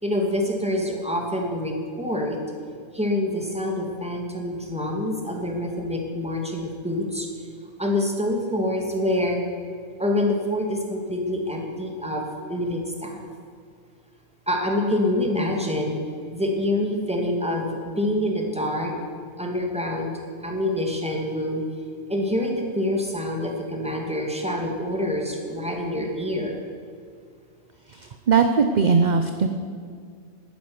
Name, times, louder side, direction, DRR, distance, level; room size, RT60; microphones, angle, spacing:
voice 1, 0.0-2.4 2.9-7.3 7.8-9.4 10.0-12.2 12.5-13.2 14.5-16.0 16.3-18.9 19.4-20.1 20.4-21.6 22.1-26.7, left 1 dB, 5° right, 0 dB, 2.3 m, -26 dB
voice 2, 28.3-29.5, right 5 dB, 45° right, 7 dB, 0.8 m, -19 dB
12.0 x 10.5 x 9.6 m, 2.1 s
omnidirectional pair, 1.2 m